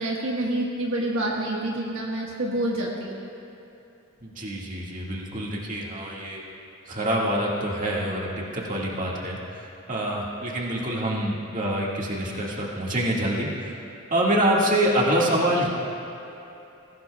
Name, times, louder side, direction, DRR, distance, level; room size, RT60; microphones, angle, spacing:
voice 1, 0.0-3.2, right 1 dB, 70° right, -3 dB, 1.5 m, -27 dB
voice 2, 4.2-6.4 6.9-9.4 9.9-13.7 14.1-15.7, right 1 dB, 40° right, -4 dB, 1.9 m, -26 dB
20.5 x 16.5 x 2.3 m, 2.9 s
head